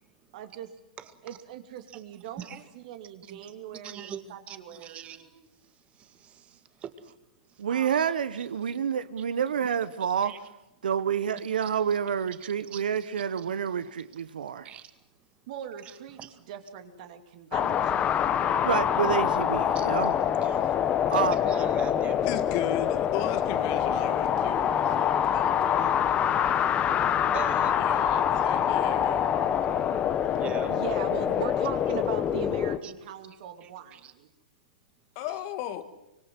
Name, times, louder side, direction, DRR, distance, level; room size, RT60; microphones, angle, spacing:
voice 1, 0.3-0.7 1.2-2.5 2.7-5.3 7.7-8.0 15.5-18.3 27.1-27.2 30.7-34.3, right 10 dB, 55° right, 7 dB, 2.9 m, -40 dB
voice 2, 1.0-1.4 1.9-2.0 2.4-2.6 3.2-3.4 3.8-7.2 7.5-7.7 8.4-8.5 10.2-10.4 12.7-13.1 14.6-14.9 15.8-16.3 18.4-18.5 19.7-19.9 20.4-20.7 21.1-22.3 27.3-28.0 30.4-30.8 32.8-32.9 33.6-34.1, right 8 dB, 25° right, 10 dB, 2.2 m, -42 dB
voice 3, 7.6-10.3 10.8-14.7 18.6-20.1 21.1-21.4, right 8 dB, 80° right, 14 dB, 1.1 m, -28 dB
sound 1, 17.5-32.8, left 9 dB, 25° left, 1.3 m, -25 dB
voice 4, 22.3-26.1 27.7-29.3 35.2-35.8, left 12 dB, 45° left, 10 dB, 1.9 m, -36 dB
25.0 x 24.0 x 7.8 m, 0.97 s
hypercardioid pair, 125°, 5 cm